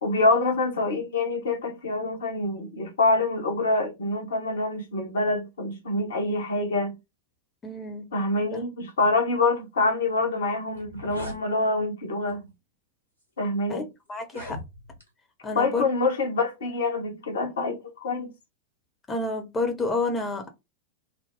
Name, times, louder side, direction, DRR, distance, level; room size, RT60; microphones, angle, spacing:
voice 1, 0.0-6.9 8.1-12.5 13.4-13.9 15.5-18.3, left 2 dB, 65° left, 1.1 m, -26 dB
voice 2, 7.6-8.1 8.5-8.6 13.7-13.8 14.1-14.6 15.4-15.8 19.1-20.5, left 2 dB, 20° left, 0.9 m, -29 dB
sound 1, 10.7-11.4 12.3-12.5 13.2-13.3 14.2-15.1, equal, 90° right, 1.5 m, -40 dB
3.6 x 2.1 x 3.7 m
figure-of-eight pair, 90°, 0 cm